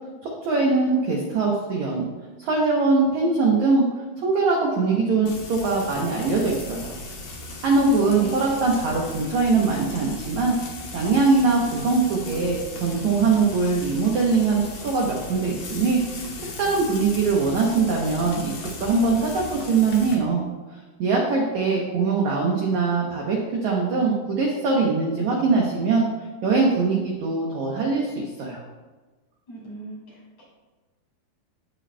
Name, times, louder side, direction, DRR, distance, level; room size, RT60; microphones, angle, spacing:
voice 1, 0.2-2.1 2.4-3.8 4.2-6.9 7.6-10.5 10.9-16.3 16.6-18.5 18.8-20.4 21.0-26.1 26.4-28.6, right 4 dB, 80° right, -1 dB, 1.7 m, -22 dB
Frying (food), 5.2-20.1, left 2 dB, 80° left, 1.4 m, -37 dB
voice 2, 8.0-8.5 29.5-30.4, right 3 dB, 45° left, -6 dB, 3.6 m, -38 dB
15.0 x 5.1 x 2.3 m, 1.3 s
omnidirectional pair, 4.6 m